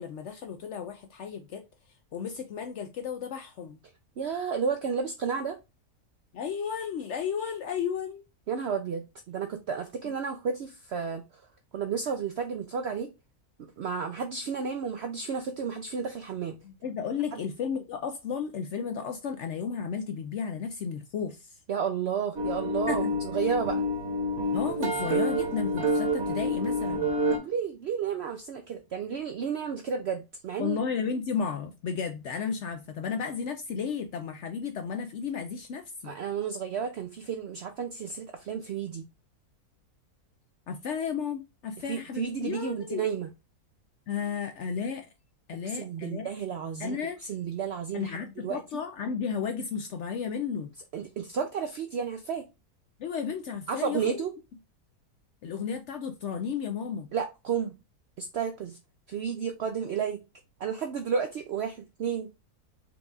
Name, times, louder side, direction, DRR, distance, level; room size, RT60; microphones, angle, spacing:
voice 1, 0.0-1.6 2.1-3.8 6.3-8.2 10.0-10.1 16.6-21.6 22.9-23.2 24.5-27.1 30.6-36.2 40.7-43.0 44.1-45.1 45.5-46.3 46.8-47.2 47.9-50.7 53.0-54.2 55.4-57.1, left 6 dB, 70° left, 0.7 m, -33 dB
voice 2, 4.2-5.6 8.5-11.2 11.7-13.1 13.6-16.6 17.3-17.4 21.7-23.0 23.3-23.8 27.3-30.8 36.0-39.0 41.9-43.3 45.7-47.0 47.3-48.6 50.9-52.4 53.7-54.3 57.1-57.7 58.2-58.8 59.1-60.2 60.6-62.3, right 6 dB, 70° right, 0.6 m, -32 dB
sound 1, 22.4-27.4, equal, 50° right, 1.2 m, -28 dB
4.8 x 2.3 x 3.8 m
omnidirectional pair, 1.6 m